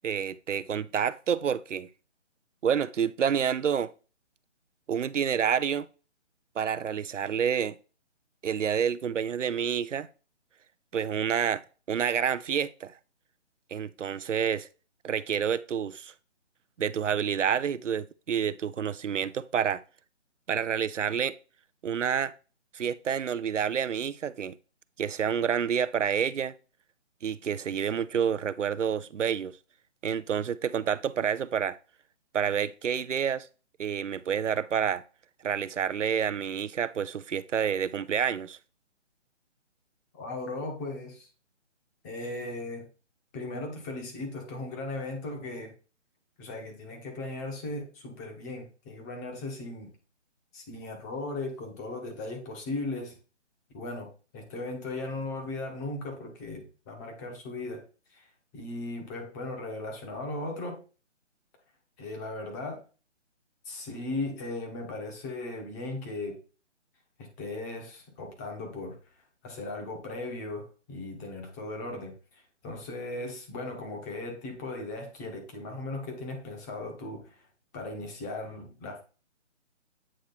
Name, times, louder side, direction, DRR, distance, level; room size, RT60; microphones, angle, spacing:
voice 1, 0.0-1.9 2.6-3.9 4.9-5.9 6.6-7.8 8.4-10.1 10.9-11.6 11.9-12.9 13.7-14.7 15.0-16.1 16.8-19.8 20.5-21.3 21.8-22.3 22.7-24.5 25.0-26.5 27.2-29.6 30.0-31.8 32.3-33.5 33.8-35.0 35.4-38.6, right 8 dB, 85° right, 0.6 m, -28 dB
voice 2, 40.1-41.3 42.0-42.9 43.3-45.7 46.4-49.9 50.5-53.2 53.7-57.8 58.1-60.8 62.0-62.8 63.6-66.4 67.2-77.5 77.7-79.0, left 2 dB, 15° left, 1.1 m, -37 dB
8.7 x 3.1 x 4.0 m
figure-of-eight pair, 150°, 36 cm